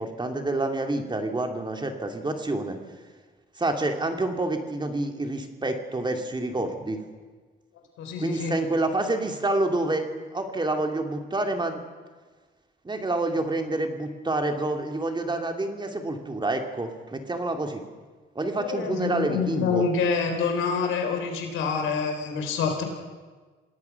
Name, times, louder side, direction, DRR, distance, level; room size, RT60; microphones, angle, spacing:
voice 1, 0.0-2.8 3.6-7.0 8.2-11.8 12.8-17.8 18.3-19.9, right 2 dB, 20° right, 4 dB, 2.8 m, -28 dB
voice 2, 8.0-8.5 18.6-22.8, left 5 dB, 90° left, 4 dB, 4.0 m, -27 dB
27.5 x 18.0 x 6.0 m, 1.4 s
cardioid pair, 90°, 20 cm